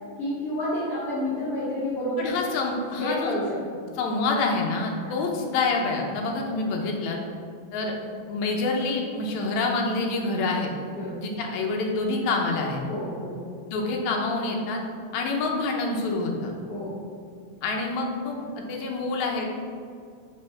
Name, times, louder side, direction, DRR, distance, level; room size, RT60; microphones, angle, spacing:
voice 1, 0.2-2.4 3.0-3.8 5.0-5.1 10.9-11.2 12.9-13.4 16.7-17.0, left 1 dB, 50° left, -10 dB, 2.2 m, -30 dB
voice 2, 2.2-3.3 4.0-7.2 7.7-7.9 8.3-10.7 11.2-12.8 13.7-14.8 15.1-16.5 17.6-19.5, left 3 dB, 70° left, 0 dB, 1.9 m, -27 dB
5.5 x 4.5 x 5.7 m, 2.2 s
omnidirectional pair, 3.9 m